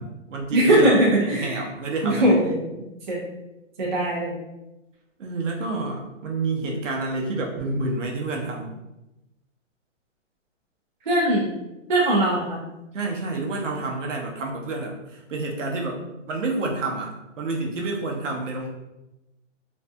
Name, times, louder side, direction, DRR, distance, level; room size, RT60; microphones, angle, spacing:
voice 1, 0.0-2.6 5.2-8.8 12.9-18.7, right 2 dB, 70° right, 0 dB, 0.7 m, -29 dB
voice 2, 0.5-1.6 2.0-2.7 3.1-3.2 3.8-4.3 11.1-11.4 11.9-12.6, right 1 dB, 40° right, -4 dB, 0.5 m, -20 dB
2.6 x 2.5 x 2.2 m, 0.96 s
hypercardioid pair, 175°, 38 cm